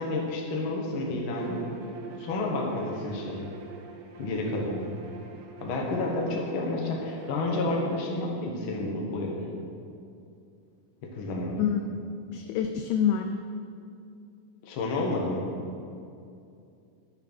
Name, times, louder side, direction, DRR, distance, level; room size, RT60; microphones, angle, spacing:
voice 1, 0.0-1.7 2.2-3.5 4.2-5.0 5.6-9.5 11.0-11.6 14.6-15.5, left 2 dB, 55° left, -1 dB, 1.6 m, -30 dB
Bowed string instrument, 1.3-8.1, right 6 dB, 85° right, 2.5 m, -45 dB
voice 2, 11.6-13.5, left 8 dB, 85° left, 6 dB, 1.7 m, -28 dB
10.5 x 6.5 x 6.2 m, 2.5 s
omnidirectional pair, 3.8 m